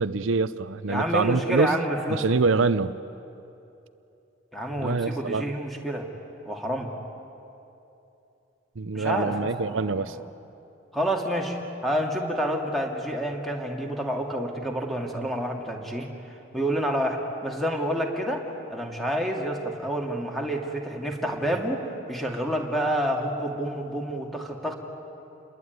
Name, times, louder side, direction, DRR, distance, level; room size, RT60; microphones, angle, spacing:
voice 1, 0.0-1.7 2.1-3.0 4.8-5.5 8.8-10.2, right 4 dB, 85° right, 13 dB, 0.7 m, -25 dB
voice 2, 0.9-2.4 4.5-6.1 6.5-6.9 8.9-10.1 10.9-16.1 16.5-24.7, equal, ahead, 1 dB, 2.6 m, -28 dB
28.5 x 21.5 x 9.6 m, 2.8 s
head